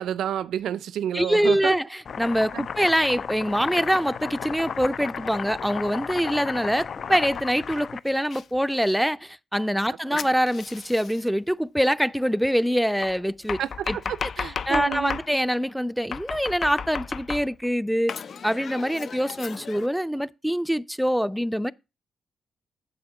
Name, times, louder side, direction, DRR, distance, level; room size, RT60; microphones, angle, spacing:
voice 1, 0.0-1.7 2.5-2.7 9.9-10.0 13.6-15.2, right 10 dB, 70° right, 0.4 m, -30 dB
voice 2, 1.1-13.6 13.9-18.1 18.4-21.7, equal, ahead, 0.5 m, -24 dB
Domestic sounds home sounds, 2.0-8.4 10.2-11.3 13.0-15.3 16.1-17.7 18.1-19.9, left 6 dB, 55° left, 0.4 m, -34 dB
7.8 x 7.4 x 4.8 m
hypercardioid pair, 40°, 0 cm